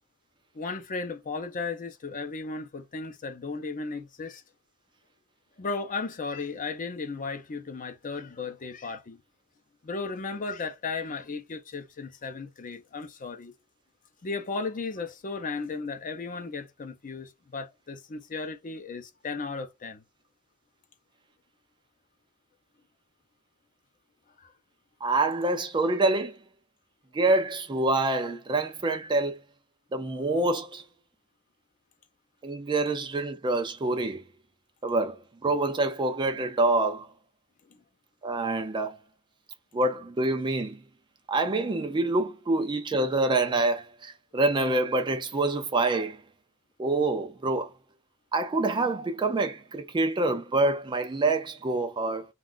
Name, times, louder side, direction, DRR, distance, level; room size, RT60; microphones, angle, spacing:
voice 1, 0.5-4.4 5.6-9.2 9.8-13.5 14.2-20.0 24.4-24.5 37.7-37.8, left 4 dB, 35° left, 0.5 m, -35 dB
voice 2, 25.0-26.4 27.1-29.4 29.9-30.8 32.4-34.2 34.8-35.2 35.4-37.1 38.2-39.0 39.7-40.8 41.3-46.2 46.8-47.7 48.3-52.3, right 2 dB, 20° right, 0.3 m, -26 dB
2.5 x 2.3 x 3.7 m
head